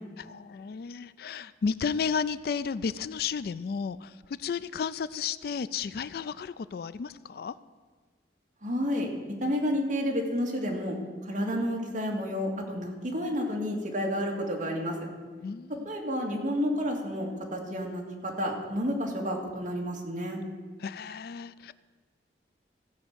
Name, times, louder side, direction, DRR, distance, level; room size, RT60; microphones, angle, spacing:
voice 1, 0.2-7.5 15.4-15.9 20.8-21.7, left 6 dB, 55° left, 16 dB, 0.3 m, -33 dB
voice 2, 8.6-9.1 9.4-11.0 11.2-15.0 15.8-20.4, equal, 45° right, 0 dB, 2.1 m, -30 dB
15.5 x 5.4 x 8.0 m, 1.5 s
head